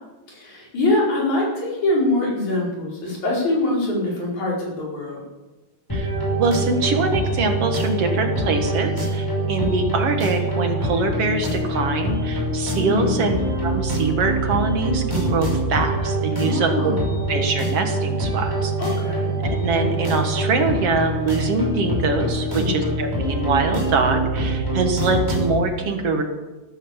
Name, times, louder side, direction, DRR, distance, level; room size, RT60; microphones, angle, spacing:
voice 1, 0.3-5.2 12.7-13.2 16.4-17.1 18.8-19.3 22.5-23.0, left 2 dB, 75° left, -4 dB, 6.2 m, -24 dB
sound 1, 5.9-25.6, right 1 dB, 5° left, 5.7 m, -24 dB
voice 2, 6.4-16.9 17.3-18.7 19.4-26.2, right 3 dB, 55° right, 5 dB, 2.3 m, -23 dB
14.0 x 13.5 x 7.2 m, 1.1 s
omnidirectional pair, 3.3 m